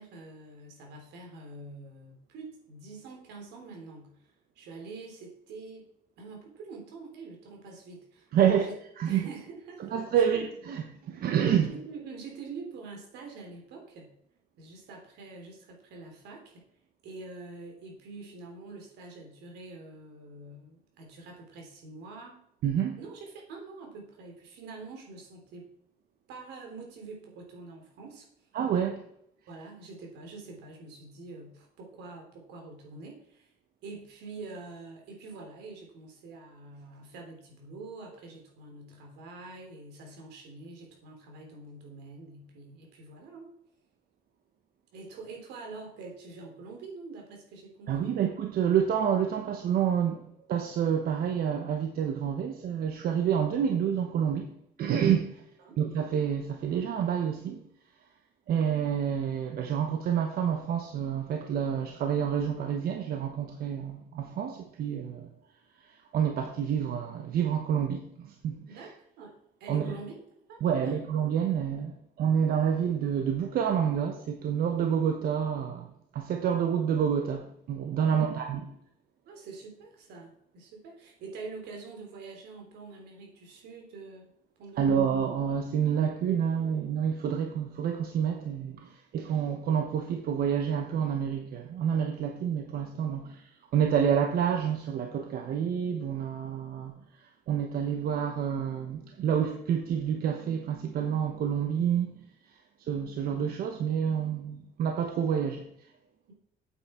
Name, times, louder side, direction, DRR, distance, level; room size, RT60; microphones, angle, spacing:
voice 1, 0.0-4.1 4.5-5.9 6.2-8.8 9.1-10.3 11.6-14.1 14.6-16.7 17.0-22.4 23.0-25.7 26.3-28.3 29.5-33.5 33.8-43.5 44.9-48.2 55.2-55.3 55.6-55.8 68.7-70.1 70.5-71.0 78.0-78.3 79.2-84.3 84.6-85.2, right 3 dB, 85° right, 3.4 m, -45 dB
voice 2, 8.3-8.6 9.0-9.2 9.8-11.7 22.6-23.0 28.5-29.0 47.9-50.2 50.5-54.5 54.8-55.4 55.8-57.6 58.5-65.3 66.1-68.6 69.7-69.9 70.6-75.9 76.1-78.7 84.8-97.0 97.5-102.1 102.9-105.6, right 8 dB, 65° right, 1.1 m, -28 dB
8.5 x 8.3 x 4.4 m
cardioid pair, 110°, 17 cm